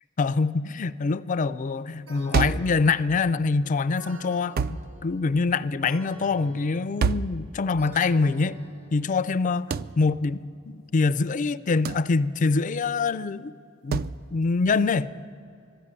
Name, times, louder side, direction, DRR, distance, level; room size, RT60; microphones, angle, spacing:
voice 1, 0.2-8.6 8.9-13.5 13.8-15.1, left 4 dB, 40° left, 0.4 m, -25 dB
sound 1, 2.1-9.7, right 1 dB, 75° right, 1.4 m, -49 dB
sound 2, 2.3-2.8 4.6-4.9 7.0-7.4 9.7-10.0 11.8-12.1 13.9-14.2, right 5 dB, 45° right, 0.3 m, -26 dB
12.0 x 11.0 x 9.8 m
head